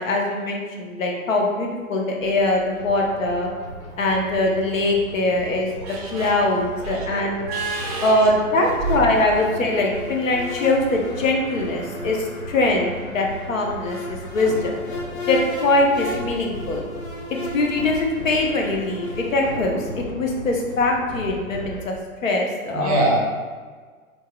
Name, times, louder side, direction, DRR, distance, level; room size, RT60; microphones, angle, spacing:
voice 1, 0.0-3.5 4.0-7.4 8.0-14.8 15.3-16.9 17.5-21.9 22.2-23.1, left 2 dB, 65° left, 0 dB, 0.9 m, -22 dB
sound 1, 2.2-21.8, right 1 dB, 90° left, 1.4 m, -37 dB
voice 2, 5.8-6.3 6.8-8.1 22.7-23.2, right 2 dB, 25° right, -1 dB, 0.6 m, -25 dB
sound 2, 8.5-19.6, left 2 dB, 35° left, 0.7 m, -35 dB
3.9 x 3.7 x 2.3 m, 1.5 s
figure-of-eight pair, 120°, 43 cm